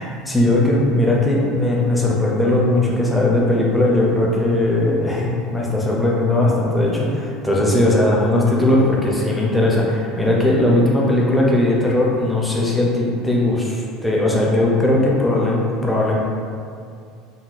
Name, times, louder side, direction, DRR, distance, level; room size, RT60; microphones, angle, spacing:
voice 1, 0.3-16.2, left 1 dB, 5° left, -4 dB, 0.4 m, -18 dB
3.8 x 2.2 x 2.4 m, 2.3 s
cardioid pair, 145°, 0 cm